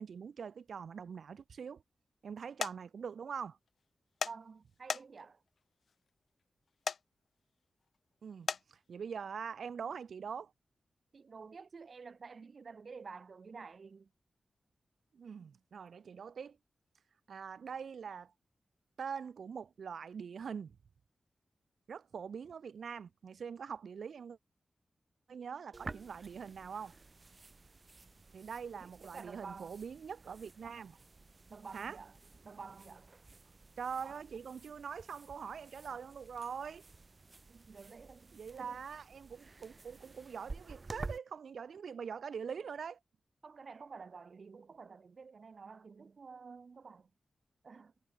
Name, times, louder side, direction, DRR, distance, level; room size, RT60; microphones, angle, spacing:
voice 1, 0.0-1.8 2.2-3.6 8.2-10.5 15.1-16.6 17.3-18.3 19.0-20.8 21.9-24.4 25.3-26.9 28.3-31.0 31.7-32.0 33.8-36.8 38.3-43.0, right 6 dB, 80° right, 1.7 m, -43 dB
sound 1, 2.6-2.7 4.2-4.3 4.9-5.3 6.9-7.0 8.5-8.6, left 6 dB, 70° left, 0.4 m, -34 dB
voice 2, 4.2-5.4 11.1-14.1 28.8-29.8 31.5-32.1 32.4-33.1 37.5-38.8 43.4-47.1 47.6-47.9, right 5 dB, 60° right, 4.2 m, -50 dB
sound 2, 25.7-41.2, right 3 dB, 40° right, 1.8 m, -51 dB
wide cardioid pair, 90°, 0 cm